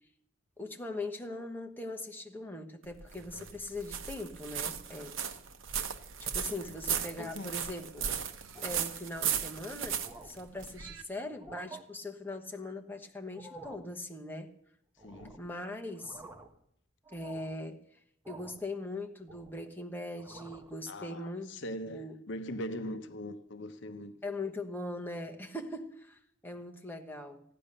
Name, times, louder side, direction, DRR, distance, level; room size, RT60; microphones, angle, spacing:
voice 1, 0.6-5.2 6.3-8.1 8.6-14.5 15.4-16.2 17.1-17.8 18.3-21.5 21.9-22.2 24.2-27.4, left 2 dB, 10° left, 1.1 m, -41 dB
sound 1, 2.8-11.0, right 8 dB, 70° right, 1.0 m, -36 dB
gutteral guys, 7.0-7.5 7.9-8.2 8.6-8.8 9.4-9.5 9.8-10.5 11.3-11.8 13.2-13.9 15.0-15.5 15.9-16.6 17.0-17.6 18.2-18.7 19.0-19.7 20.1-20.8, right 2 dB, 10° right, 1.1 m, -51 dB
voice 2, 7.2-7.5 15.0-15.4 20.9-24.2, equal, 60° left, 0.7 m, -41 dB
15.0 x 9.9 x 6.7 m
head